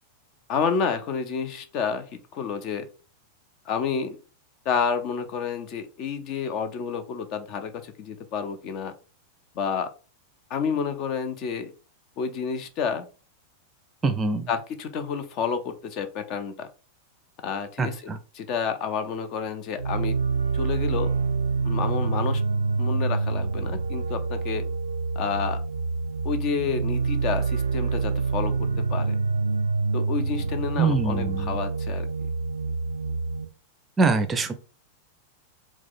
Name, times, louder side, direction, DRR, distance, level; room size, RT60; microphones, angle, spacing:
voice 1, 0.5-2.9 3.7-4.2 4.6-8.9 9.6-9.9 10.5-11.7 12.2-13.1 14.5-16.7 17.4-20.2 20.5-21.1 21.6-22.4 22.8-24.6 25.2-25.6 26.2-29.2 29.9-32.1, left 6 dB, 40° left, 9 dB, 0.6 m, -29 dB
voice 2, 14.0-14.5 17.8-18.2 30.8-31.6 34.0-34.5, right 4 dB, 20° right, 9 dB, 0.5 m, -24 dB
sound 1, 19.8-33.4, right 4 dB, 75° right, 0.4 m, -27 dB
4.4 x 2.3 x 3.9 m, 0.34 s
figure-of-eight pair, 90°, 0 cm